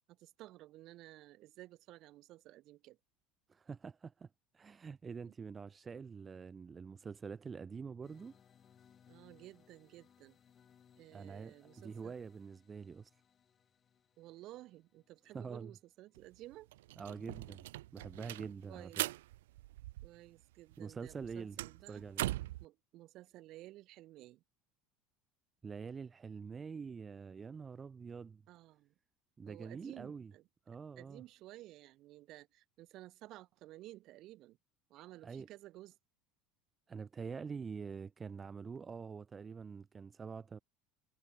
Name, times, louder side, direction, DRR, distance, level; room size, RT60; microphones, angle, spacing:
voice 1, 0.1-3.0 5.2-5.3 9.1-10.4 11.0-12.1 14.2-16.7 18.7-19.0 20.0-22.0 22.6-24.4 28.5-28.9 29.4-30.4 31.0-34.6 34.9-35.9, right 16 dB, 55° right, 1.7 m, -54 dB
voice 2, 3.5-8.3 11.1-13.1 15.3-15.8 17.0-17.7 17.9-19.0 20.8-21.6 21.9-22.3 25.6-28.4 29.4-30.3 30.7-31.2 35.2-35.5 36.9-40.6, right 5 dB, 25° right, 0.6 m, -46 dB
sound 1, 8.0-16.8, left 8 dB, 35° left, 2.7 m, -67 dB
sound 2, 16.2-16.3 16.5-20.4 20.7-22.6, right 17 dB, 85° right, 0.3 m, -41 dB
supercardioid pair, 95°, 0 cm